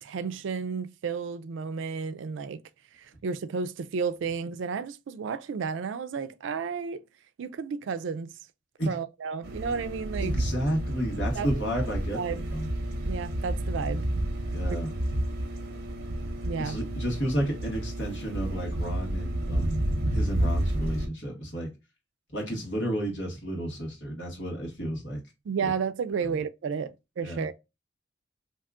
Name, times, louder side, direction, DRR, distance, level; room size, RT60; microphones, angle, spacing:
voice 1, 0.0-2.6 2.9-7.0 7.4-8.3 8.9-10.4 11.3-11.5 11.8-11.9 12.1-12.5 13.1-14.1 16.4-16.8 25.5-27.6, right 5 dB, 70° right, 0.3 m, -32 dB
sound 1, 9.4-21.1, right 1 dB, 55° right, 0.8 m, -30 dB
voice 2, 10.2-12.7 14.5-14.9 16.6-21.7 22.3-25.2 25.6-25.7 27.2-27.4, equal, 65° left, 1.3 m, -32 dB
2.7 x 2.3 x 3.5 m
head